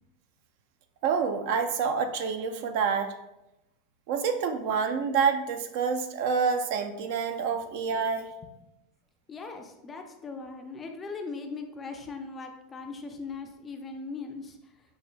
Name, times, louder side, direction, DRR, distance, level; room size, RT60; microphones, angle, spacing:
voice 1, 1.0-3.2 4.1-8.3, right 6 dB, 60° right, 7 dB, 0.4 m, -27 dB
voice 2, 9.3-14.6, left 4 dB, 20° left, 4 dB, 0.4 m, -39 dB
5.5 x 2.4 x 2.2 m, 0.92 s
supercardioid pair, 150°, 0 cm